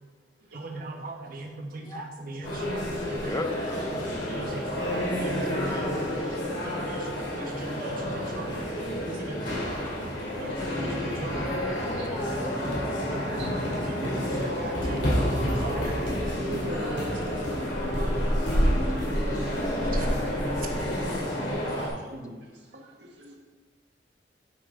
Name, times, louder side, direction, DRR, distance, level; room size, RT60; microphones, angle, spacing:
voice 1, 0.5-3.4 4.3-4.6 5.2-6.0 6.6-7.0 7.3-7.4 7.7-8.5 9.1-9.6 10.4-10.5 10.7-11.4 13.1-13.4 14.2-14.3 14.6-15.1 15.4-15.8 16.3-16.4 18.5-18.6 21.5-21.6, right 2 dB, 50° right, 2 dB, 1.2 m, -38 dB
sound 1, 2.4-21.9, equal, 70° left, 2.7 m, -29 dB
voice 2, 3.2-4.0 6.1-6.3 11.8-12.6, left 2 dB, 20° left, 8 dB, 0.4 m, -35 dB
voice 3, 16.5-18.2 21.7-21.9 23.0-23.4, equal, 80° right, 0 dB, 1.5 m, -39 dB
9.8 x 6.2 x 3.8 m, 1.3 s
head